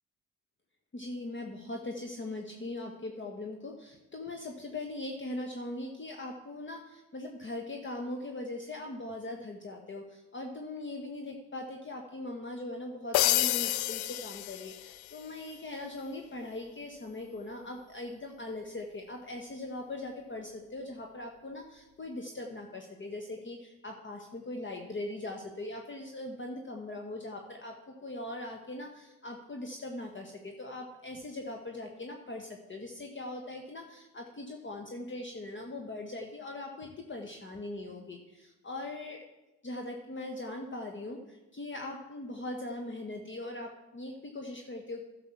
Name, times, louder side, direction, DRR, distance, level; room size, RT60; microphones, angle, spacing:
voice 1, 0.9-39.2 39.6-45.0, left 2 dB, 30° left, 2 dB, 1.3 m, -40 dB
sound 1, 13.1-15.2, left 16 dB, 75° left, 0.5 m, -29 dB
11.0 x 6.1 x 5.8 m, 1.0 s
supercardioid pair, 60°, 39 cm